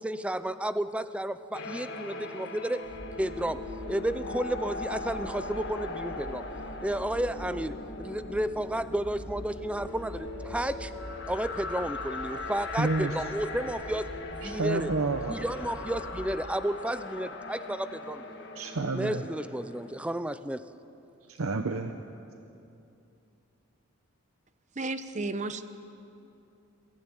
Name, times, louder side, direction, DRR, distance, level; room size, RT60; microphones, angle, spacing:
voice 1, 0.0-2.8 3.2-6.5 6.8-10.9 11.3-14.9 15.3-18.4 18.9-20.7, right 1 dB, 5° right, 13 dB, 0.5 m, -32 dB
sound 1, 1.5-19.9, left 3 dB, 50° left, 1.8 m, -40 dB
sound 2, 2.8-16.4, equal, 50° right, 2.0 m, -45 dB
voice 2, 12.8-13.2 14.4-15.4 18.5-19.2 21.3-22.0, right 3 dB, 70° right, 7 dB, 0.8 m, -29 dB
voice 3, 24.8-25.6, right 3 dB, 35° right, 11 dB, 0.8 m, -33 dB
22.5 x 15.0 x 9.0 m, 2.7 s
head